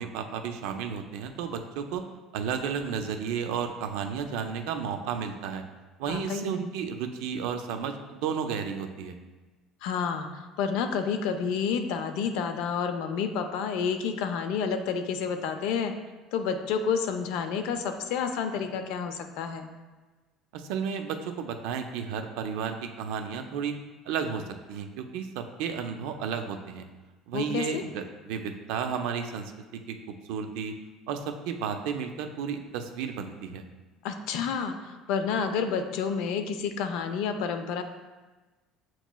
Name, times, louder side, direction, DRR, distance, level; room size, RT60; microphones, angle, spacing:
voice 1, 0.0-2.0 2.3-5.6 6.0-9.2 20.5-23.7 24.1-24.4 24.7-26.9 27.3-29.5 29.9-30.0 30.2-30.7 31.1-33.6, right 7 dB, 80° right, 6 dB, 0.4 m, -32 dB
voice 2, 6.1-6.6 9.8-15.9 16.3-19.7 27.3-27.8 34.0-37.8, left 6 dB, 75° left, 7 dB, 0.4 m, -30 dB
7.8 x 3.0 x 2.2 m, 1.2 s
cardioid pair, 170°, 0 cm